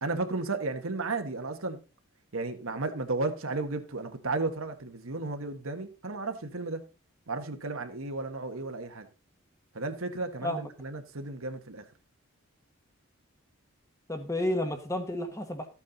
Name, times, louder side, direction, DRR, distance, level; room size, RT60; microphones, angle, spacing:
voice 1, 0.0-1.8 2.3-6.8 7.3-9.1 9.7-11.8, right 3 dB, 65° right, 1.4 m, -33 dB
voice 2, 14.1-15.7, left 1 dB, 15° left, 1.5 m, -31 dB
13.5 x 8.5 x 4.0 m
head